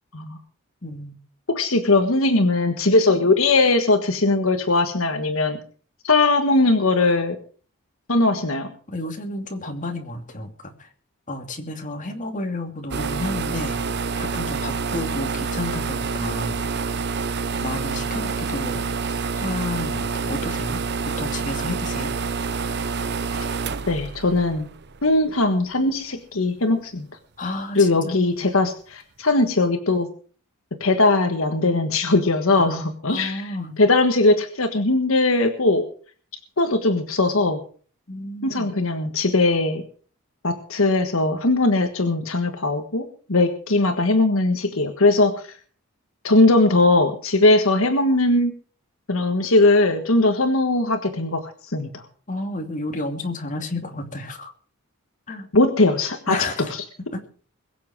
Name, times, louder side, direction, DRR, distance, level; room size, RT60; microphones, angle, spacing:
voice 1, 0.8-1.1 8.9-10.9 11.3-13.8 14.2-16.6 17.6-20.8 21.2-22.1 27.4-28.5 32.6-33.8 38.1-38.7 52.3-54.5 55.3-55.5 56.3-56.7 57.1-57.2, left 2 dB, 35° left, 4 dB, 2.7 m, -31 dB
voice 2, 1.5-5.6 6.0-7.4 8.1-8.7 23.9-24.7 25.0-27.1 27.7-30.1 30.8-33.4 33.8-35.8 36.6-37.6 38.4-39.8 40.4-45.3 46.2-48.5 49.1-52.0 55.5-56.4, left 2 dB, 70° left, 6 dB, 1.5 m, -19 dB
sound 1, 12.9-25.3, right 4 dB, 50° right, 0.8 m, -27 dB
22.0 x 7.5 x 6.2 m, 0.43 s
head